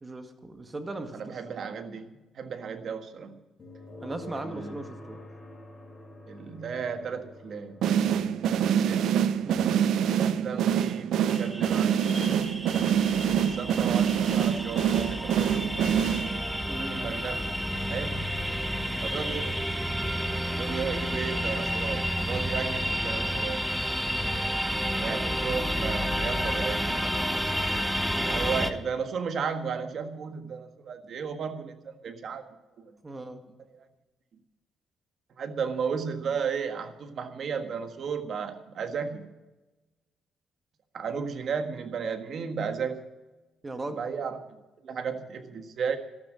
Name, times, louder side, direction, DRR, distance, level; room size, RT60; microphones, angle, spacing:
voice 1, 0.0-1.2 4.0-5.2 9.5-9.8 16.7-17.0 33.0-33.4 43.6-44.0, right 2 dB, 25° right, 7 dB, 1.9 m, -37 dB
voice 2, 1.1-3.4 4.3-4.8 6.3-7.8 8.6-9.2 10.1-12.7 13.3-15.9 16.8-17.6 17.9-18.3 19.0-19.6 20.5-23.7 24.9-27.0 28.2-32.4 32.8-32.9 33.7-33.8 35.4-39.3 40.9-43.0 43.9-44.4 44.8-46.0, right 6 dB, 60° right, 8 dB, 1.6 m, -34 dB
sound 1, 3.6-18.5, left 1 dB, 25° left, 5.6 m, -50 dB
sound 2, 7.8-16.6, right 9 dB, 80° right, 0.7 m, -25 dB
sound 3, 11.3-28.7, equal, ahead, 1.1 m, -30 dB
13.0 x 12.5 x 6.4 m, 1.1 s
cardioid pair, 90°, 0 cm